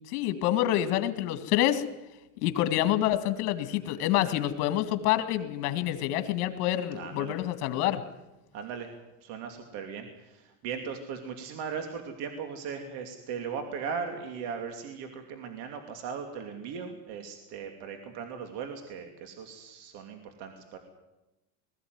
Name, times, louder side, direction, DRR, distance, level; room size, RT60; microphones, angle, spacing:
voice 1, 0.0-1.8 2.4-8.0, left 13 dB, 80° left, 9 dB, 2.1 m, -27 dB
voice 2, 6.9-7.3 8.5-8.9 9.2-20.8, right 6 dB, 60° right, 5 dB, 2.9 m, -38 dB
20.5 x 15.0 x 9.5 m, 0.98 s
supercardioid pair, 135°, 45 cm